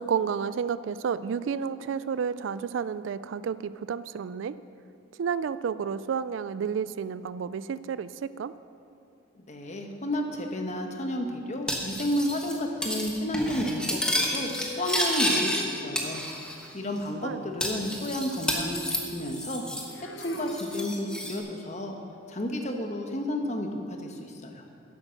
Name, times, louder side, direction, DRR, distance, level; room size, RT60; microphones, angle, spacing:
voice 1, 0.0-4.6 5.2-8.5 17.2-17.4, right 6 dB, 80° right, 16 dB, 0.3 m, -31 dB
voice 2, 9.3-14.5 14.8-16.2 16.7-19.6 20.0-22.0 22.3-24.6, equal, 40° left, 3 dB, 1.1 m, -31 dB
Cutlery silverware, 11.7-12.5 12.8-13.1 13.3-15.6 16.0-16.7 17.0-17.1 17.6-19.9 20.2-21.4, left 1 dB, 5° left, 1.2 m, -30 dB
sound 1, 13.7-16.5 19.6-21.5 22.4-22.6, left 2 dB, 65° left, 0.8 m, -44 dB
11.0 x 8.4 x 6.6 m, 2.6 s
head